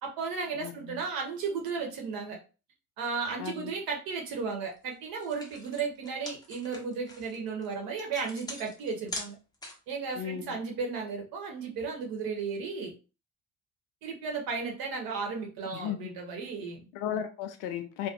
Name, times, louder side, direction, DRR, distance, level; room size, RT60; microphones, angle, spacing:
voice 1, 0.0-2.4 3.0-9.4 9.9-12.9 14.0-16.8, right 5 dB, 55° right, 2 dB, 0.9 m, -34 dB
voice 2, 0.6-1.0 3.4-3.7 10.2-10.6 15.7-16.1 16.9-18.1, left 9 dB, 50° left, 7 dB, 0.5 m, -35 dB
sound 1, 4.8-4.9 5.2-10.0, left 1 dB, 10° left, 0.6 m, -42 dB
2.3 x 2.1 x 2.8 m, 0.33 s
figure-of-eight pair, 50°, 43 cm